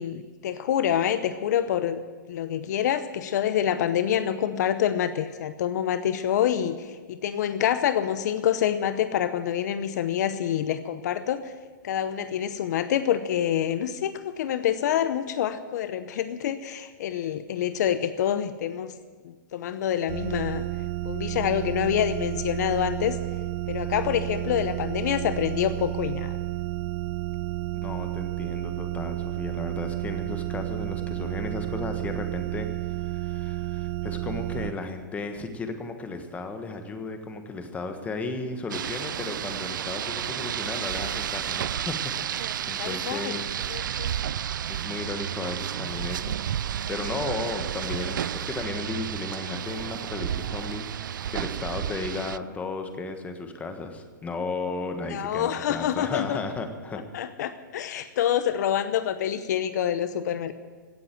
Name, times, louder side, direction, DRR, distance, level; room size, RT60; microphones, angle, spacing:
voice 1, 0.0-2.0 2.3-11.5 11.8-18.9 19.2-20.6 21.0-23.2 23.7-26.3 42.8-43.4 43.7-44.2 55.1-56.4 57.1-60.5, left 10 dB, 60° left, 12 dB, 0.8 m, -27 dB
sound 1, 20.1-34.7, right 16 dB, 35° right, 0.7 m, -31 dB
voice 2, 27.8-43.6 44.7-46.6 46.9-57.0, left 3 dB, 15° left, 6 dB, 1.4 m, -35 dB
Rain, 38.7-52.4, right 9 dB, 80° right, 0.4 m, -31 dB
17.0 x 7.7 x 9.1 m, 1.5 s
hypercardioid pair, 140°, 11 cm